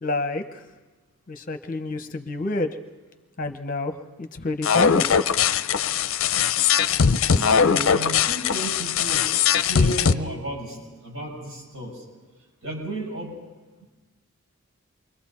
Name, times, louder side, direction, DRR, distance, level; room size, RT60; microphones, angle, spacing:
voice 1, 0.0-0.6 1.3-2.8 3.4-5.0, left 2 dB, 35° left, 7 dB, 0.8 m, -28 dB
sound 1, 4.6-10.1, left 7 dB, 60° left, 0.5 m, -20 dB
voice 2, 7.4-12.1 12.6-13.4 13.8-13.9, right 1 dB, 70° right, -3 dB, 7.0 m, -33 dB
28.5 x 23.5 x 4.3 m, 1.3 s
head